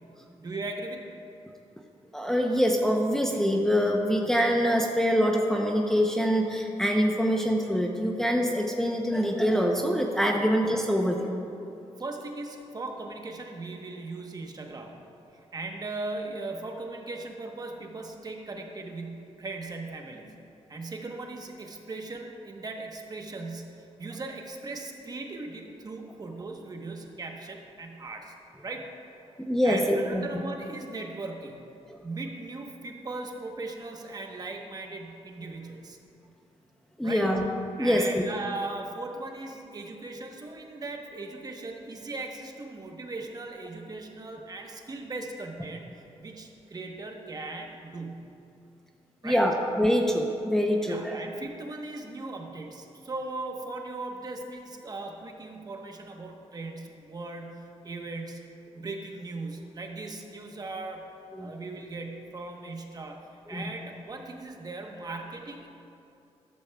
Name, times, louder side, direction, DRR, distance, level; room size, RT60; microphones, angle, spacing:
voice 1, 0.2-1.1 10.4-10.5 12.0-15.0 15.5-20.3 20.7-28.3 28.6-28.9 29.2-29.3 29.6-31.6 32.0-36.0 37.0-37.3 37.8-45.9 46.2-48.3 49.2-49.4 50.8-58.5 58.7-61.1 61.4-65.7, right 2 dB, 35° right, 2 dB, 1.1 m, -38 dB
voice 2, 2.1-11.3 29.4-30.2 37.0-37.5 37.8-38.2 49.2-51.2 61.3-61.5 63.5-63.7, equal, 5° left, 0 dB, 0.7 m, -25 dB
13.0 x 12.5 x 2.3 m, 2.7 s
cardioid pair, 105°, 12 cm